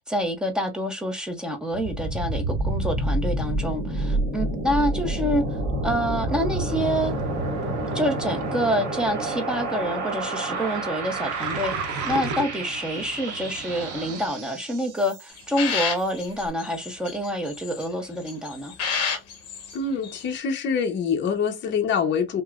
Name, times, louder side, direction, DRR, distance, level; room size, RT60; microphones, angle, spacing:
voice 1, 0.0-7.1 7.9-18.7, equal, 5° right, 0.6 m, -27 dB
sound 1, 1.7-15.5, right 2 dB, 90° right, 1.6 m, -29 dB
sound 2, 6.7-14.3, right 4 dB, 70° right, 0.9 m, -36 dB
sound 3, 15.3-17.9 18.3-19.8 20.0-20.4, left 6 dB, 55° left, 1.1 m, -30 dB
voice 2, 19.7-22.4, left 6 dB, 40° left, 0.8 m, -25 dB
5.8 x 2.0 x 2.4 m
cardioid pair, 175°, 30 cm